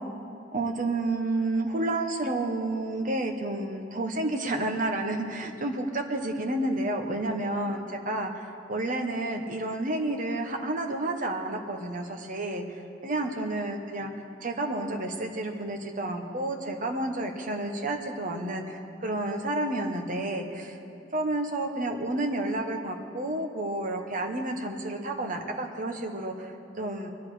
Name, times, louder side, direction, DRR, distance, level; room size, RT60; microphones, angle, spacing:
voice 1, 0.5-14.1 14.4-20.8 21.1-27.1, right 2 dB, 45° right, 3 dB, 1.3 m, -30 dB
22.5 x 11.0 x 5.0 m, 2.6 s
head